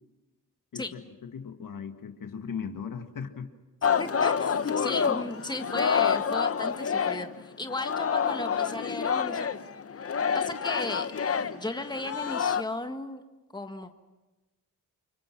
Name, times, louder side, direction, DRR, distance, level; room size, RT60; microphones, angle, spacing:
voice 1, 0.7-3.5, left 6 dB, 70° left, 6 dB, 2.0 m, -38 dB
Singing, 3.8-7.4 7.7-12.6, left 7 dB, 45° left, 0.9 m, -28 dB
voice 2, 4.0-9.5 10.3-11.1 11.5-13.2 13.5-13.9, left 2 dB, 10° left, 6 dB, 1.8 m, -35 dB
29.5 x 25.0 x 6.1 m, 1.1 s
cardioid pair, 80°, 34 cm